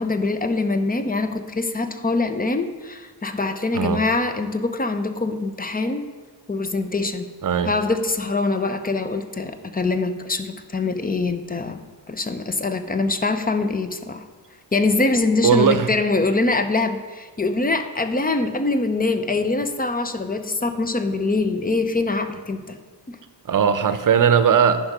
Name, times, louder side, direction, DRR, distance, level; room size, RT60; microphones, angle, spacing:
voice 1, 0.0-6.1 6.5-7.3 7.6-11.8 12.1-14.2 14.7-22.8 23.1-23.2, left 3 dB, 20° left, 9 dB, 0.6 m, -23 dB
voice 2, 7.4-7.7 15.4-15.9 23.5-24.8, right 7 dB, 45° right, 11 dB, 0.7 m, -18 dB
10.0 x 5.4 x 6.0 m, 1.4 s
wide cardioid pair, 115°, 43 cm